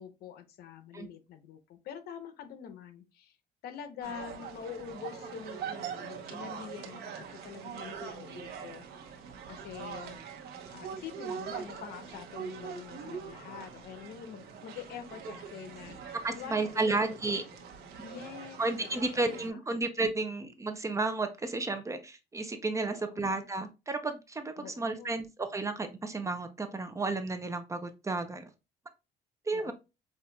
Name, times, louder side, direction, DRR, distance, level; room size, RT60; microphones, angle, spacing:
voice 1, 0.0-3.4 3.6-8.9 9.5-10.2 10.7-17.4 18.0-19.6 22.8-23.3 24.6-25.2 29.5-29.7, left 8 dB, 70° left, 9 dB, 0.7 m, -45 dB
sound 1, 4.0-19.5, right 7 dB, 70° right, 0.9 m, -43 dB
voice 2, 16.2-17.4 18.6-28.4 29.5-29.7, right 3 dB, 20° right, 8 dB, 0.6 m, -32 dB
5.6 x 2.5 x 2.2 m, 0.26 s
cardioid pair, 110°, 17 cm